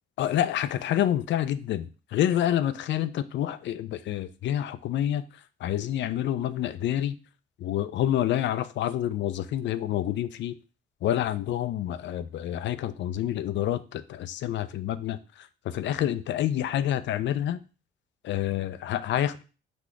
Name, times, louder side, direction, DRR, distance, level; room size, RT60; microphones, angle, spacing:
voice 1, 0.2-5.2 5.6-7.2 7.6-10.5 11.0-17.6 18.2-19.4, left 11 dB, 65° left, 13 dB, 0.4 m, -28 dB
4.1 x 2.8 x 4.6 m, 0.34 s
cardioid pair, 90°, 20 cm